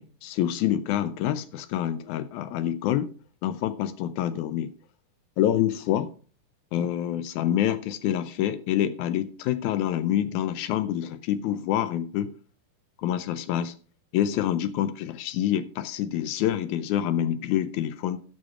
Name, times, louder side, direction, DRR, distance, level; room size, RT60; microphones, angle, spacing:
voice 1, 0.0-3.1 3.4-4.7 5.4-6.1 6.7-12.3 13.0-13.7 14.1-18.2, left 11 dB, 90° left, 1.7 m, -27 dB
14.0 x 6.4 x 4.8 m
omnidirectional pair, 4.2 m